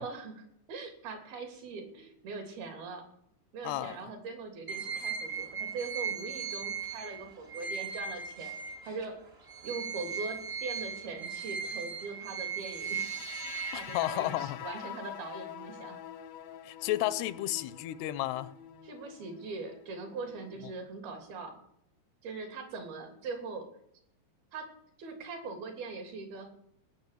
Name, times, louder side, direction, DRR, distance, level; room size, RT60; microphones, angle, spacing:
voice 1, 0.0-3.0 3.5-9.1 9.6-13.1 13.4-16.0 18.8-21.6 22.2-23.7 24.5-24.7 25.0-26.5, right 4 dB, 70° right, 4.9 m, -41 dB
voice 2, 3.6-4.1 13.7-14.6 16.6-18.5, left 15 dB, 85° left, 2.8 m, -32 dB
sound 1, 4.7-9.1 9.5-14.4, right 6 dB, 40° right, 0.9 m, -38 dB
sound 2, 12.6-20.7, left 10 dB, 70° left, 1.6 m, -46 dB
18.5 x 7.0 x 8.3 m
omnidirectional pair, 4.5 m